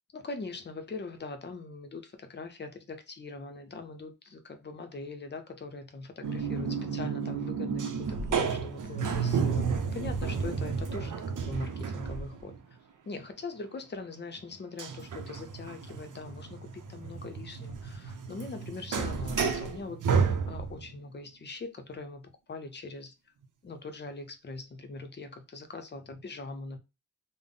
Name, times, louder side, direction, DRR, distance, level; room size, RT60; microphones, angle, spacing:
voice 1, 0.1-11.2 11.4-12.5 13.1-23.1 23.6-26.8, left 3 dB, 35° left, 0.6 m, -42 dB
sound 1, 6.2-12.6 14.8-20.9, right 5 dB, 85° right, 0.6 m, -32 dB
3.6 x 2.0 x 3.6 m
wide cardioid pair, 150°, 30 cm